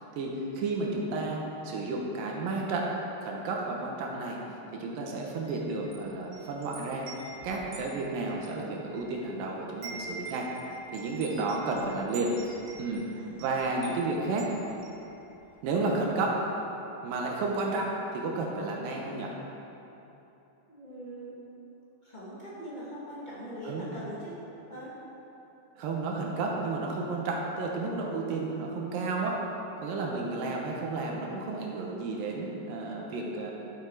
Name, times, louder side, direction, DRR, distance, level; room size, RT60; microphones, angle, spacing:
voice 1, 0.1-2.9 3.2-4.4 4.8-7.1 7.4-10.5 10.9-12.3 12.8-13.0 13.4-14.5 15.6-16.4 17.0-19.3 23.7-23.9 25.8-29.4 29.8-33.5, right 3 dB, 70° right, -1 dB, 2.3 m, -32 dB
Wind chime, 5.3-9.4 9.7-15.6, right 3 dB, 90° right, 3.9 m, -46 dB
voice 2, 11.7-12.2 13.1-13.5 20.7-21.5 22.0-24.4 24.7-25.0, equal, 25° left, -9 dB, 1.0 m, -42 dB
13.5 x 7.2 x 4.8 m, 3.0 s
omnidirectional pair, 5.0 m